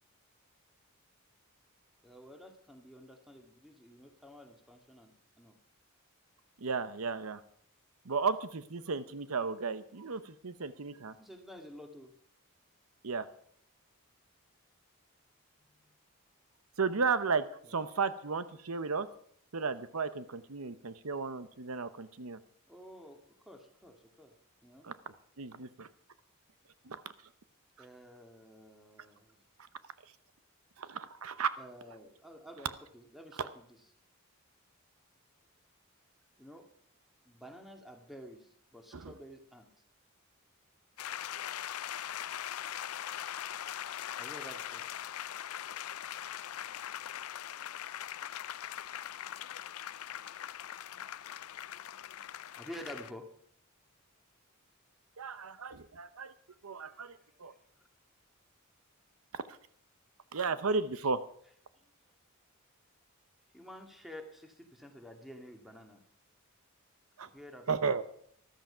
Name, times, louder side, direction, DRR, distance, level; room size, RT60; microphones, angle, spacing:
voice 1, 2.0-5.6 11.2-12.1 15.6-16.0 17.6-17.8 22.7-24.3 24.6-24.9 27.8-29.4 31.6-33.7 36.4-36.7 37.3-39.7 42.2-42.6 44.2-45.0 52.6-53.3 56.9-57.9 61.8-62.1 63.5-66.0 67.3-67.9, equal, ahead, 4 dB, 2.0 m, -51 dB
voice 2, 6.6-7.4 8.0-11.1 13.0-13.3 16.8-19.1 19.5-22.4 24.8-24.9 25.4-25.9 26.8-27.0 30.8-31.5 38.9-39.1 55.2-56.3 56.6-57.5 59.3-59.6 60.3-61.2 67.2-67.3 67.7-68.0, right 5 dB, 80° right, 13 dB, 0.8 m, -34 dB
sound 1, 41.0-53.1, left 11 dB, 90° left, 0.5 m, -41 dB
14.0 x 13.0 x 5.7 m, 0.62 s
head